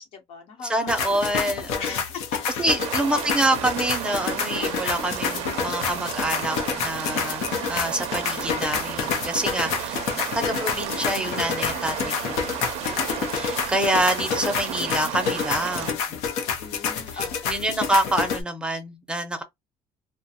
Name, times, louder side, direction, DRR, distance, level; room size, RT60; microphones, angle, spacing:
voice 1, 0.0-1.2 1.8-3.4 11.7-12.6 16.6-17.6, left 5 dB, 60° left, 1.0 m, -39 dB
voice 2, 0.7-2.0 2.6-7.4 7.7-16.2 17.1-19.4, right 1 dB, 10° right, 0.6 m, -27 dB
sound 1, 0.9-18.4, left 6 dB, 90° left, 0.6 m, -29 dB
sound 2, 2.8-15.9, right 12 dB, 75° right, 0.4 m, -33 dB
2.5 x 2.2 x 2.8 m
cardioid pair, 140°, 11 cm